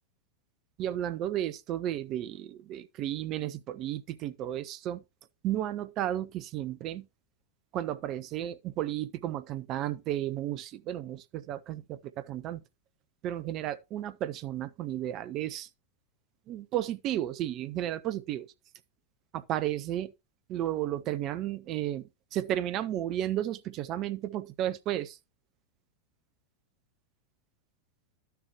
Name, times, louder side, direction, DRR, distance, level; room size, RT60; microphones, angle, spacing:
voice 1, 0.8-5.0 5.4-7.1 7.7-12.6 13.2-15.7 16.5-18.5 19.3-20.1 20.5-25.2, right 12 dB, 35° right, 0.7 m, -33 dB
12.0 x 6.9 x 3.0 m
figure-of-eight pair, 90°, 0 cm